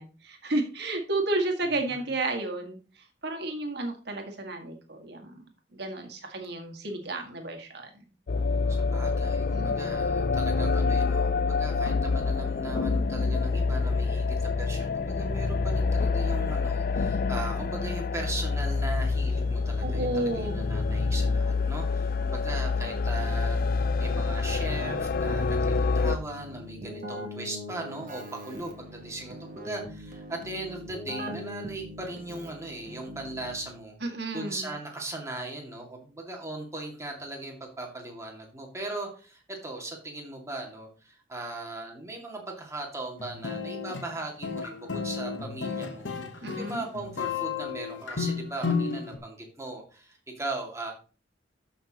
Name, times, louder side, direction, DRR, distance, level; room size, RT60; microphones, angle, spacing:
voice 1, 0.0-8.0 9.5-10.1 19.8-20.6 34.0-34.8 46.4-46.8, right 2 dB, 65° right, 4 dB, 1.8 m, -32 dB
sound 1, 8.3-26.2, left 4 dB, 50° left, 0.5 m, -27 dB
voice 2, 8.7-34.0 34.3-50.9, right 2 dB, 15° right, 0 dB, 2.1 m, -38 dB
Keyboard (musical), 26.1-34.0, equal, 50° right, 1.5 m, -41 dB
sound 2, 43.2-49.2, left 5 dB, 90° left, 1.1 m, -33 dB
13.0 x 5.8 x 2.9 m, 0.37 s
head